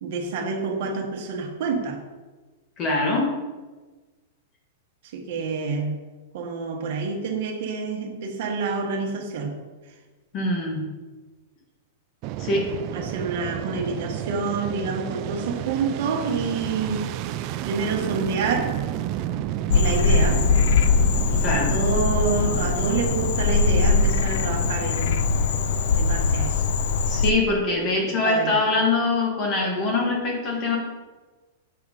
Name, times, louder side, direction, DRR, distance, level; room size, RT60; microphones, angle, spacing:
voice 1, 0.0-2.0 5.1-6.0 6.3-9.6 12.9-17.0 17.6-18.7 19.7-20.4 21.3-25.3 25.9-26.6 28.0-28.6, right 4 dB, 55° right, 2 dB, 1.3 m, -28 dB
voice 2, 2.8-3.3 10.3-10.8 12.4-12.7 21.4-21.7 27.1-30.8, left 3 dB, 30° left, 0 dB, 1.7 m, -23 dB
Fixed-wing aircraft airplane, 12.2-27.4, right 12 dB, 35° right, 0.3 m, -32 dB
Frog, 19.7-27.3, left 5 dB, 65° left, 0.4 m, -21 dB
7.2 x 3.8 x 4.9 m, 1.3 s
supercardioid pair, 160°, 0 cm